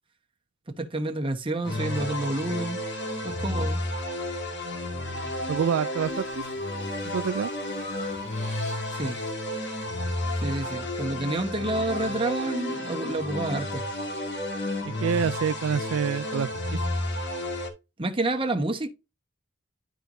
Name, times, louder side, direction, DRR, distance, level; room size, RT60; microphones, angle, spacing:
voice 1, 0.8-2.8 3.2-3.8 8.9-9.2 10.4-13.8 18.0-18.9, right 2 dB, 25° right, 1.2 m, -29 dB
sound 1, 1.6-17.7, left 1 dB, 60° left, 2.2 m, -31 dB
voice 2, 5.5-6.5 7.0-7.5 14.9-16.8, right 7 dB, 75° right, 0.4 m, -27 dB
Breathing, 6.0-6.5 6.9-9.2, left 3 dB, 35° left, 1.4 m, -46 dB
11.5 x 4.6 x 2.6 m
head